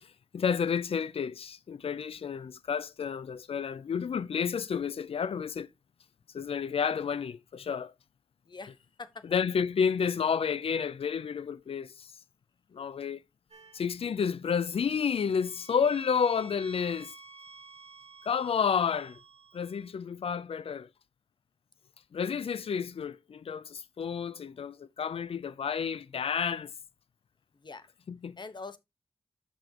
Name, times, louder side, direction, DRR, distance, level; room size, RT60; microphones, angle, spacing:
voice 1, 0.0-5.7 6.3-7.9 9.3-12.1 12.7-13.2 13.7-17.1 18.2-19.2 19.5-20.9 22.1-26.7 28.1-28.4, left 6 dB, 75° left, 0.5 m, -30 dB
voice 2, 8.5-9.2 27.5-27.9 28.4-28.8, left 4 dB, 50° left, 1.1 m, -44 dB
sound 1, 13.5-14.0 14.8-19.9, right 3 dB, 85° right, 3.3 m, -52 dB
11.5 x 6.2 x 2.9 m
wide cardioid pair, 120°, 10 cm